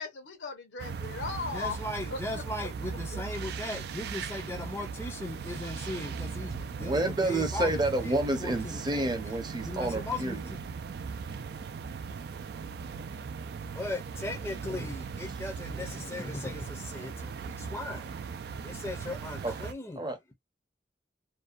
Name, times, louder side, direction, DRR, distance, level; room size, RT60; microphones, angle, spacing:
voice 1, 0.0-1.8 2.1-2.4 3.1-3.2, left 4 dB, 80° left, 0.9 m, -37 dB
sound 1, 0.8-19.7, right 5 dB, 60° right, 0.3 m, -38 dB
voice 2, 1.5-9.1 9.6-10.6 13.7-20.1, left 2 dB, 15° left, 0.5 m, -38 dB
voice 3, 6.8-10.4 19.4-19.5 20.0-20.2, right 2 dB, 25° right, 0.7 m, -29 dB
2.6 x 2.2 x 2.3 m
head